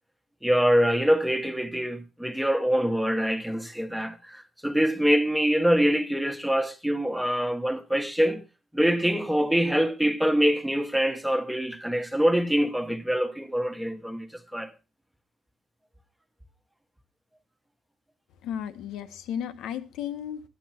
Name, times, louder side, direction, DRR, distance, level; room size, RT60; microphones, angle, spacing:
voice 1, 0.4-8.4 8.7-14.7, equal, ahead, 1.3 m, -24 dB
voice 2, 18.4-20.4, left 9 dB, 90° left, 1.3 m, -34 dB
13.0 x 10.0 x 4.4 m
cardioid pair, 155°, 0 cm